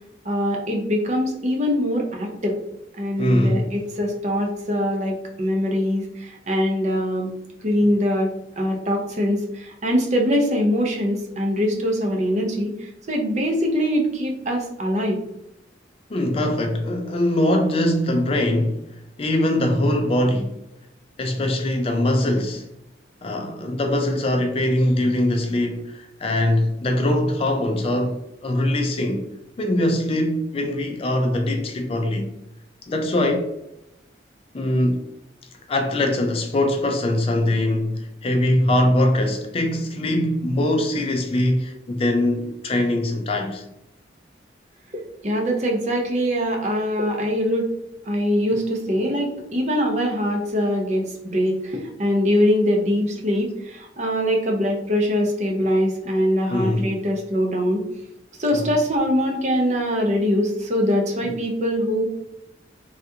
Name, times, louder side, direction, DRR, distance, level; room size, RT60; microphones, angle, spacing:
voice 1, 0.2-2.6 3.0-7.3 7.6-15.2 45.2-47.7 48.1-57.8 58.4-62.0, equal, 40° right, 0.6 m, -23 dB
voice 2, 3.2-3.7 16.1-20.6 21.2-22.6 23.2-29.2 29.6-32.3 32.9-33.5 34.5-35.0 35.7-43.6 56.5-56.9 58.5-58.7 61.2-61.3, left 1 dB, 30° left, 0.4 m, -22 dB
3.4 x 2.4 x 2.7 m
head